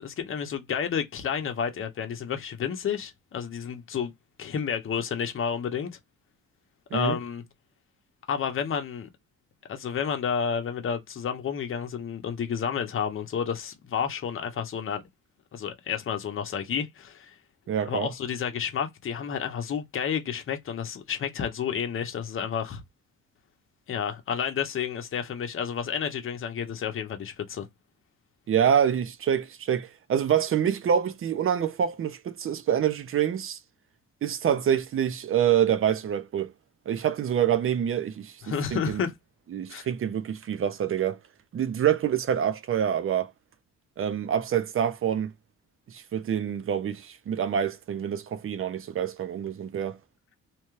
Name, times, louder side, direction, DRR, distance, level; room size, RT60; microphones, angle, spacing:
voice 1, 0.0-4.1 4.4-5.9 6.9-7.4 8.3-9.1 9.7-15.0 15.5-17.3 17.8-22.8 23.9-27.7 38.4-39.1 39.7-39.9, left 7 dB, 45° left, 0.8 m, -30 dB
voice 2, 17.7-18.1 28.5-33.6 34.2-36.5 36.9-38.4 38.7-39.1 39.5-41.2 41.5-43.3 44.0-45.3 45.9-50.0, right 9 dB, 45° right, 0.6 m, -26 dB
2.9 x 2.2 x 3.1 m
cardioid pair, 90°, 30 cm